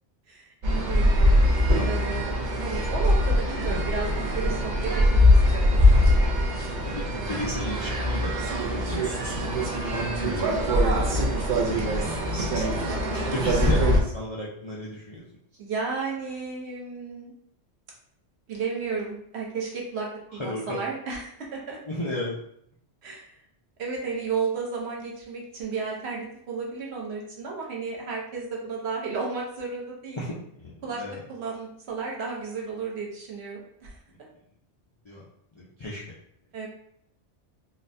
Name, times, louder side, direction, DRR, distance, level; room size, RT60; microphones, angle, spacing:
voice 1, 0.3-1.3 1.8-5.2 5.5-6.4 15.6-17.3 18.5-21.8 23.0-23.3 23.8-30.2 30.8-34.0 36.5-36.7, right 4 dB, 65° right, -2 dB, 1.0 m, -33 dB
sound 1, 0.6-14.0, left 1 dB, 50° right, 0.6 m, -22 dB
voice 2, 6.9-8.3 8.7-10.8 11.4-12.8 13.3-15.2 20.3-20.8 21.9-22.4 30.2-31.2 35.0-35.2 35.5-36.1, left 1 dB, 45° left, -7 dB, 0.3 m, -34 dB
3.9 x 2.2 x 2.6 m, 0.69 s
omnidirectional pair, 1.2 m